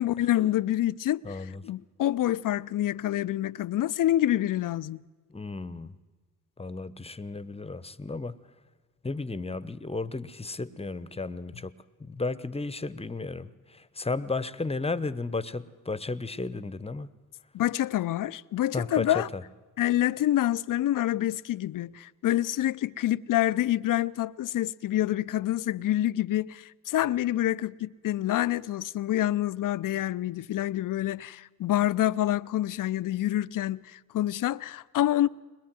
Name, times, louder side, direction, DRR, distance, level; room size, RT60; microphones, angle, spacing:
voice 1, 0.0-5.0 17.5-19.3 19.8-35.3, left 13 dB, 45° left, 0.7 m, -27 dB
voice 2, 1.2-1.6 5.3-6.0 6.6-8.4 9.0-17.1 18.7-19.4, left 3 dB, 15° left, 1.0 m, -34 dB
21.5 x 21.5 x 7.7 m
hypercardioid pair, 45°, 45 cm